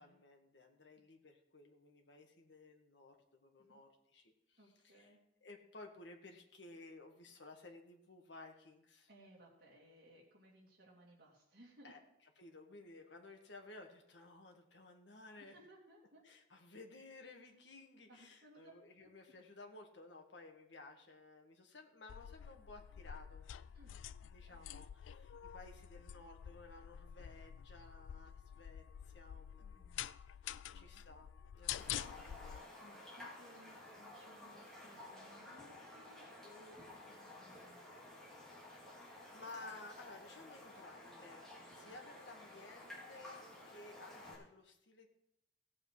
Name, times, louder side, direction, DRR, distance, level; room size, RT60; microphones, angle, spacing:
voice 1, 0.0-5.1 5.4-9.1 11.8-12.0 12.4-15.5 16.2-23.5 24.3-28.8 29.1-29.9 30.7-32.7 38.5-45.1, left 2 dB, 70° left, 3 dB, 1.7 m, -56 dB
voice 2, 4.6-5.2 9.1-11.9 15.5-16.2 18.1-19.1 23.7-24.8 29.6-30.1 30.6-31.0 32.8-38.5 41.6-42.0 43.6-43.7, equal, 55° right, -4 dB, 2.9 m, -63 dB
sound 1, 22.1-32.6, left 10 dB, 90° left, 0.3 m, -48 dB
Raindrop, 31.8-44.3, left 1 dB, 5° left, 3.0 m, -54 dB
16.5 x 7.7 x 4.8 m, 0.80 s
head